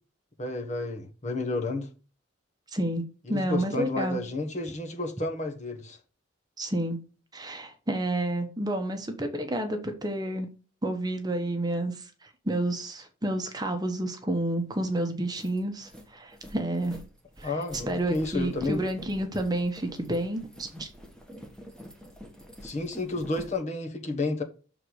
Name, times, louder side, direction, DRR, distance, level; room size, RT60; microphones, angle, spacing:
voice 1, 0.4-1.9 3.3-6.0 17.4-18.8 22.6-24.4, left 2 dB, 35° left, 1.2 m, -31 dB
voice 2, 2.7-3.0 3.3-4.2 6.6-7.0 7.3-10.5 10.8-17.0 17.4-20.9, right 1 dB, 20° right, 1.0 m, -30 dB
sound 1, 14.7-14.8 15.2-23.6, equal, 5° left, 1.3 m, -47 dB
6.6 x 4.0 x 6.3 m
head